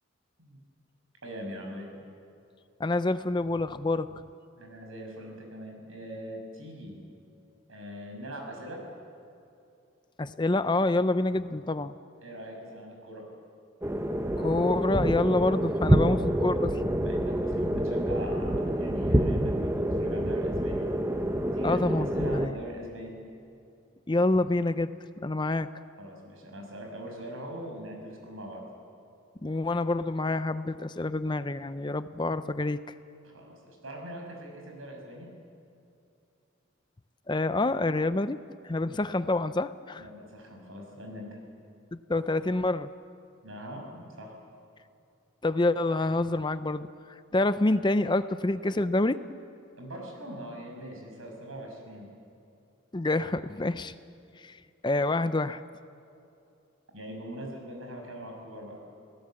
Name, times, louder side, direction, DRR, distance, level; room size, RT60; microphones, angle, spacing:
voice 1, 1.2-2.0 4.6-7.0 7.7-8.8 12.2-13.3 16.0-16.3 17.0-20.9 21.4-21.8 22.1-23.2 26.0-28.6 33.2-35.3 40.0-41.4 43.4-44.3 49.8-52.1 56.9-58.8, equal, 90° right, 2 dB, 6.2 m, -42 dB
voice 2, 2.8-4.1 10.2-11.9 14.4-16.7 17.0-17.1 21.6-22.6 24.1-24.9 25.2-25.7 29.4-32.8 37.3-38.4 38.6-40.1 41.9-42.9 45.4-46.9 47.3-49.2 52.9-53.9 54.4-54.6 54.8-55.6, left 2 dB, 20° left, 12 dB, 0.5 m, -27 dB
sound 1, 13.8-22.5, right 1 dB, 15° right, 0.9 m, -27 dB
28.5 x 17.5 x 7.7 m, 2.6 s
head